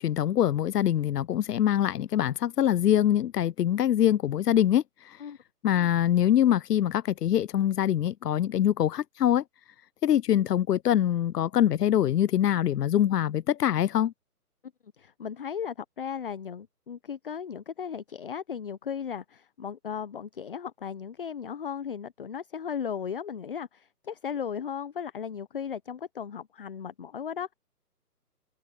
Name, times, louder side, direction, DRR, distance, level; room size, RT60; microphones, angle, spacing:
voice 1, 0.0-4.8 5.6-9.4 10.0-14.1, left 11 dB, 80° left, 0.6 m, -24 dB
voice 2, 15.0-27.5, left 7 dB, 35° left, 0.7 m, -36 dB
hypercardioid pair, 155°, 47 cm